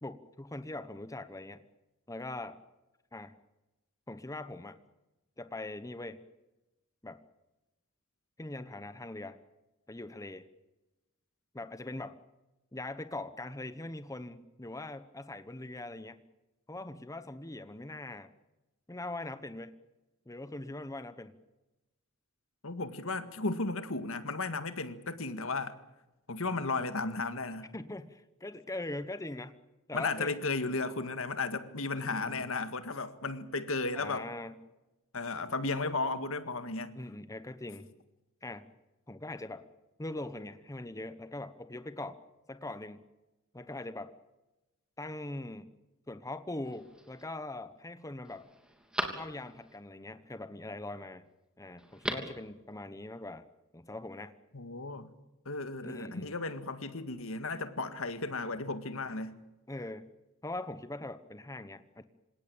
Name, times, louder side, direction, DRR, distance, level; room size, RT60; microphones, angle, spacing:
voice 1, 0.0-1.6 2.1-2.6 3.1-3.3 4.1-4.8 5.4-6.2 7.0-7.2 8.4-9.4 9.9-10.5 11.5-12.2 12.7-16.2 16.7-18.3 18.9-19.8 20.3-21.4 27.7-29.5 29.9-30.4 32.0-32.5 33.9-34.6 36.9-38.0 38.4-38.7 39.1-39.7 40.0-42.2 42.5-43.0 43.5-44.1 45.0-45.7 46.1-48.5 49.1-51.2 51.6-53.4 53.7-54.3 55.8-56.3 59.7-60.1 60.4-62.0, left 2 dB, 15° left, 1.0 m, -41 dB
voice 2, 22.6-25.8 26.3-27.7 29.9-34.3 35.1-36.9 54.5-55.1 55.5-59.3, left 3 dB, 70° left, 1.9 m, -34 dB
Telephone, 46.6-47.2 47.8-47.9 48.2-49.8 51.8-52.4 52.7-52.8, right 1 dB, 5° right, 3.2 m, -39 dB
27.0 x 17.5 x 8.8 m
head